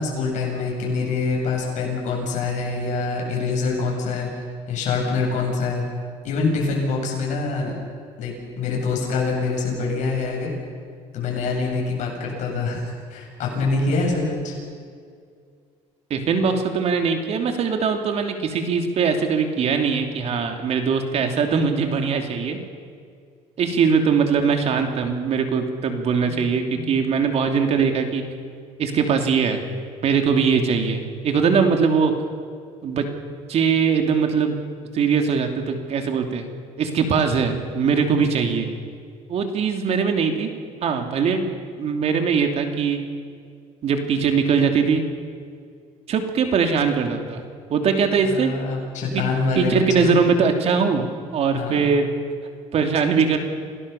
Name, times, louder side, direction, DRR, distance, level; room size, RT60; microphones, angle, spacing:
voice 1, 0.0-4.3 4.7-5.8 6.2-7.7 8.2-10.5 11.1-14.6 26.3-27.0 48.2-50.2 51.5-51.9, left 4 dB, 65° left, -1 dB, 8.0 m, -25 dB
voice 2, 16.1-22.6 23.6-28.2 28.8-29.6 30.0-32.1 32.8-33.0 33.5-34.6 34.9-36.5 36.8-38.7 39.3-40.5 40.8-41.5 41.8-43.0 43.8-45.0 46.1-47.4 47.7-48.5 49.1-49.2 49.6-52.1 52.7-53.4, right 5 dB, 55° right, 5 dB, 3.0 m, -21 dB
27.5 x 18.0 x 7.1 m, 2.2 s
cardioid pair, 125°, 13 cm